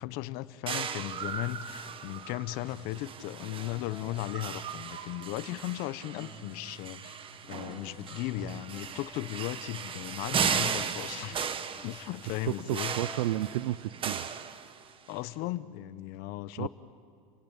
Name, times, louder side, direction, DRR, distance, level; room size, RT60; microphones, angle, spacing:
voice 1, 0.0-11.4 11.8-13.0 15.1-16.7, left 16 dB, 55° left, 15 dB, 1.0 m, -36 dB
sound 1, 0.7-15.1, right 7 dB, 30° right, 1.3 m, -36 dB
sound 2, 1.6-1.7 2.1-3.1 3.6-5.8 6.2-12.7 13.0-14.4, left 1 dB, ahead, 2.7 m, -55 dB
voice 2, 12.7-14.3 16.6-16.7, right 15 dB, 85° right, 17 dB, 0.6 m, -32 dB
29.5 x 19.0 x 9.0 m, 2.3 s
supercardioid pair, 115°, 18 cm